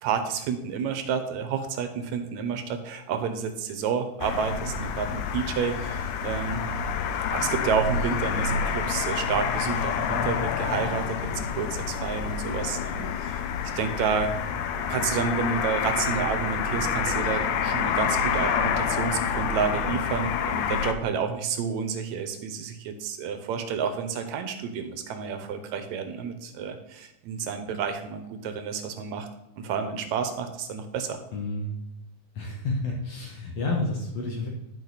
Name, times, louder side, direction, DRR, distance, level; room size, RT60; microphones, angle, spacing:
voice 1, 0.0-6.6 7.3-13.5 13.8-14.3 14.9-29.3 29.6-31.2, right 6 dB, 75° right, 7 dB, 2.0 m, -30 dB
sound 1, 4.2-20.9, left 6 dB, 85° left, 2.1 m, -28 dB
voice 2, 31.3-31.8 32.3-34.5, left 2 dB, 65° left, -1 dB, 2.1 m, -30 dB
11.0 x 5.1 x 4.0 m, 0.88 s
omnidirectional pair, 3.5 m